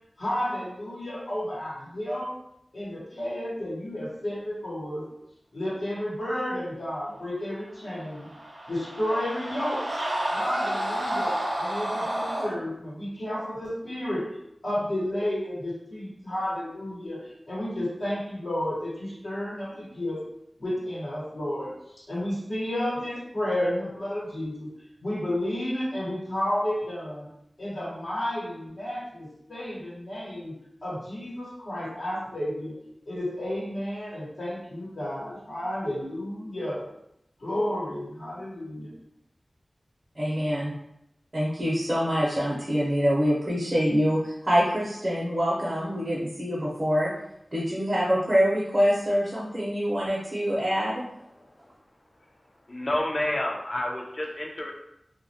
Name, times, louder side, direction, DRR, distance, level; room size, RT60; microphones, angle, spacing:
voice 1, 0.2-2.3 2.7-5.0 5.5-8.3 8.7-9.8 10.3-14.2 14.6-20.2 20.6-21.7 22.1-24.7 25.0-27.3 27.6-30.5 30.8-32.7 33.1-36.8 37.4-38.9, left 1 dB, 85° left, -9 dB, 1.0 m, -31 dB
sound 1, 8.0-12.5, right 1 dB, 90° right, 0.6 m, -30 dB
voice 2, 40.2-40.7 41.3-47.1 47.5-51.0, equal, 40° right, -7 dB, 0.6 m, -25 dB
voice 3, 52.7-54.7, left 1 dB, 45° left, 1 dB, 0.4 m, -29 dB
2.2 x 2.1 x 2.7 m, 0.80 s
wide cardioid pair, 75°, 0 cm